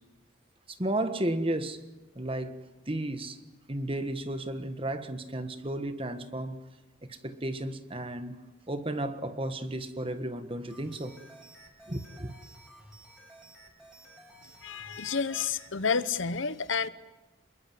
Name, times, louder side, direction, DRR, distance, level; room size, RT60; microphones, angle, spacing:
voice 1, 0.7-1.8 2.1-3.4 3.7-6.6 7.1-11.2 11.9-12.3, right 1 dB, 25° right, 1.5 m, -33 dB
sound 1, 10.7-15.7, right 1 dB, 5° right, 6.9 m, -53 dB
voice 2, 14.6-16.9, left 5 dB, 65° left, 1.0 m, -30 dB
28.0 x 22.0 x 7.8 m
head